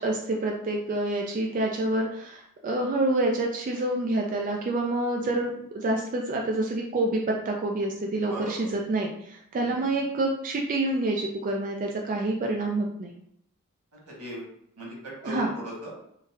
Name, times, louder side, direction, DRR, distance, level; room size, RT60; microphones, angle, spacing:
voice 1, 0.0-7.2 7.5-13.1 15.2-15.5, right 2 dB, 35° right, 0 dB, 0.3 m, -27 dB
voice 2, 8.3-8.6 9.6-9.9 14.1-14.4 14.8-16.0, right 1 dB, 85° right, -3 dB, 1.3 m, -38 dB
3.8 x 2.1 x 2.6 m, 0.73 s
head